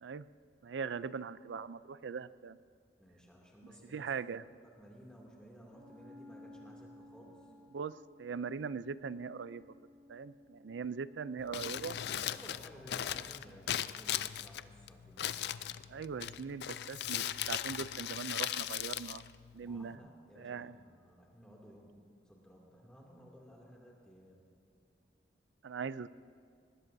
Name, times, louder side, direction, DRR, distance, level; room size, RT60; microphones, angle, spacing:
voice 1, 0.6-2.6 3.9-4.4 7.7-9.7 10.1-12.0 15.9-19.2 19.5-20.0 20.4-20.8 25.6-26.1, right 5 dB, 85° right, 16 dB, 0.4 m, -40 dB
voice 2, 3.0-7.5 12.0-15.8 19.6-24.5, equal, 5° left, -3 dB, 2.5 m, -56 dB
Wind instrument woodwind instrument, 5.7-12.4, left 2 dB, 35° right, 2.2 m, -57 dB
Crumpling crinkling, 11.4-20.0, left 11 dB, 65° left, 0.4 m, -38 dB
20.5 x 20.0 x 2.7 m, 2.3 s
head